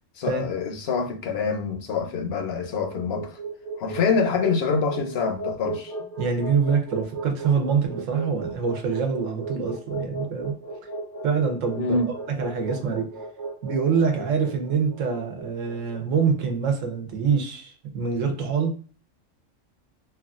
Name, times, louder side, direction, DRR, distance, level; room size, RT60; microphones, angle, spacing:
voice 1, 0.1-3.4 3.8-5.9 11.8-12.1, left 5 dB, 60° left, 0.8 m, -26 dB
sound 1, 2.6-16.8, right 2 dB, 55° right, 1.0 m, -36 dB
voice 2, 6.2-10.5 11.2-13.1 13.6-18.8, right 6 dB, 75° right, 1.1 m, -25 dB
3.1 x 2.3 x 2.3 m
omnidirectional pair, 1.3 m